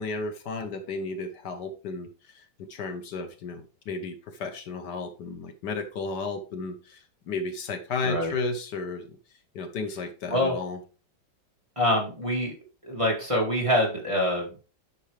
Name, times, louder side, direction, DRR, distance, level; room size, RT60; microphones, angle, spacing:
voice 1, 0.0-9.1 9.5-10.8, left 3 dB, 70° left, 7 dB, 1.5 m, -33 dB
voice 2, 11.8-12.5 12.8-14.6, left 1 dB, 15° right, -2 dB, 2.1 m, -25 dB
9.2 x 5.4 x 3.3 m, 0.35 s
omnidirectional pair, 1.9 m